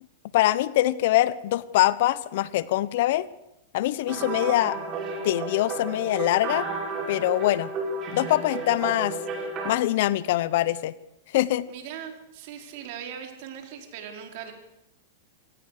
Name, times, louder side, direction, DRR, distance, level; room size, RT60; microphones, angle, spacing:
voice 1, 0.3-3.3 3.7-4.8 5.2-6.7 7.1-7.7 8.1-9.2 9.6-10.9 11.3-11.7, left 15 dB, 60° left, 18 dB, 1.0 m, -23 dB
sound 1, 4.1-9.7, right 3 dB, 35° right, 6.1 m, -32 dB
voice 2, 4.1-4.9 11.7-14.5, right 8 dB, 55° right, 4 dB, 4.7 m, -40 dB
25.5 x 18.0 x 6.7 m, 0.85 s
hypercardioid pair, 130°, 0 cm